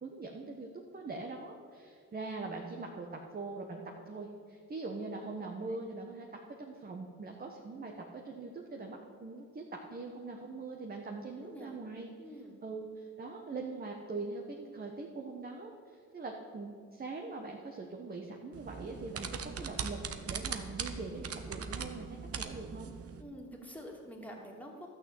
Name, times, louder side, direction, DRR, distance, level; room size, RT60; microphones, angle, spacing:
voice 1, 0.0-12.1 12.6-22.9, right 3 dB, 30° right, 1 dB, 1.3 m, -42 dB
voice 2, 11.2-11.8 12.2-12.6 23.2-24.9, equal, 5° left, -1 dB, 2.6 m, -47 dB
sound 1, 18.5-23.2, right 6 dB, 50° right, 1.0 m, -40 dB
12.5 x 6.4 x 8.2 m, 2.1 s
cardioid pair, 90°, 30 cm